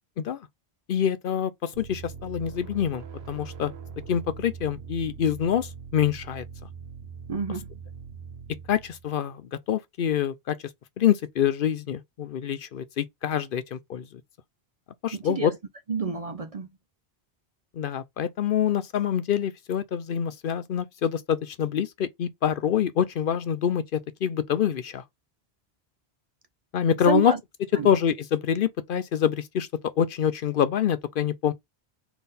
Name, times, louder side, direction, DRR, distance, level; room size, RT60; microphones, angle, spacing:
voice 1, 0.9-3.7 4.1-6.4 8.7-10.6 11.0-14.2 15.0-15.5 17.7-25.0 26.7-27.3 27.8-31.5, left 9 dB, 65° left, 0.7 m, -26 dB
sound 1, 1.7-9.2, right 6 dB, 85° right, 1.1 m, -42 dB
voice 2, 7.3-7.7 15.1-15.5 15.9-16.7 27.1-27.4 27.7-27.9, right 5 dB, 45° right, 0.6 m, -28 dB
3.7 x 3.4 x 4.1 m
omnidirectional pair, 1.0 m